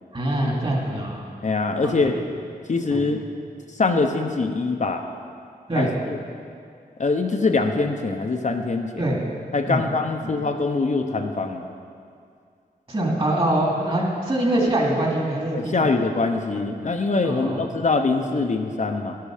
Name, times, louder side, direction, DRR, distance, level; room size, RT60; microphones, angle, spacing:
voice 1, 0.1-1.2 1.8-1.9 2.9-3.0 5.7-5.9 9.0-9.2 9.7-9.8 12.9-15.9 17.2-17.7, right 1 dB, 35° right, -2 dB, 2.8 m, -23 dB
voice 2, 1.4-2.2 2.7-3.2 3.7-5.1 5.8-6.2 7.0-9.0 9.5-11.7 15.5-19.2, left 3 dB, 50° left, 4 dB, 0.8 m, -23 dB
12.0 x 10.5 x 5.0 m, 2.3 s
wide cardioid pair, 75°, 16 cm